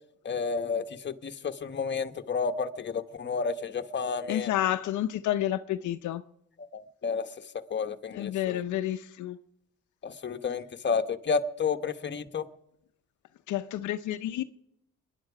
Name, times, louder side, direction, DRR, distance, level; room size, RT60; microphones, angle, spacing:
voice 1, 0.2-4.5 6.7-7.3 7.7-8.6 10.0-12.4, left 5 dB, 35° left, 1.1 m, -31 dB
voice 2, 4.3-6.2 8.1-9.4 13.5-14.4, left 12 dB, 75° left, 0.6 m, -30 dB
26.5 x 11.0 x 4.9 m
cardioid pair, 90°, 30 cm